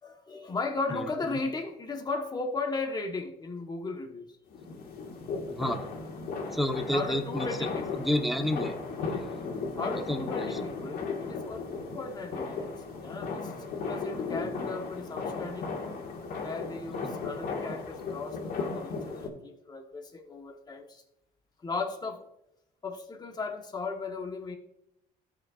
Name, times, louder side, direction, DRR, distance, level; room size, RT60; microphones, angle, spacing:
voice 1, 0.0-4.4 6.9-8.0 9.8-12.7 13.0-15.8 16.4-21.0 21.6-22.3 22.8-24.6, left 3 dB, 25° left, 3 dB, 1.3 m, -36 dB
voice 2, 0.9-1.4 5.5-5.8 6.5-7.7 8.0-8.7 10.1-10.6, equal, ahead, 5 dB, 1.0 m, -30 dB
sound 1, 4.5-19.3, left 4 dB, 60° left, 2.0 m, -36 dB
14.5 x 6.1 x 2.5 m, 0.87 s
cardioid pair, 110°, 17 cm